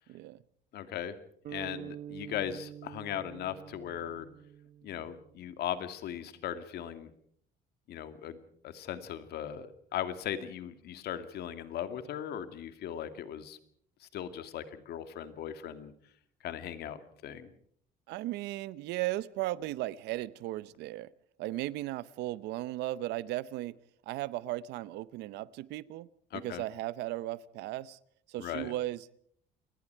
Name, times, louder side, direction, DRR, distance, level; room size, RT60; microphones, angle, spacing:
voice 1, 0.1-0.4 18.1-21.1 21.4-23.8 24.1-26.1 26.3-28.0 28.3-29.2, right 16 dB, 85° right, 19 dB, 0.8 m, -36 dB
voice 2, 0.7-1.1 1.5-4.3 4.8-7.1 7.9-8.4 8.6-13.6 14.0-15.9 16.4-17.5 26.3-26.6 28.4-28.7, left 10 dB, 70° left, 10 dB, 2.2 m, -38 dB
sound 1, 1.4-5.7, right 10 dB, 60° right, 1.0 m, -46 dB
28.5 x 20.0 x 4.6 m, 0.64 s
cardioid pair, 110°, 17 cm